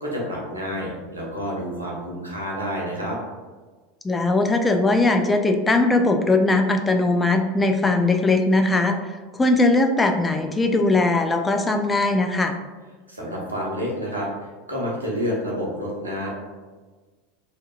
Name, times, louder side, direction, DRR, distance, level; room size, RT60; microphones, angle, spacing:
voice 1, 0.0-3.2 13.1-14.3 14.7-16.3, equal, 85° right, -3 dB, 0.8 m, -29 dB
voice 2, 4.0-12.6, left 2 dB, 15° left, 4 dB, 0.3 m, -20 dB
3.5 x 2.7 x 2.4 m, 1.3 s
figure-of-eight pair, 80°, 0 cm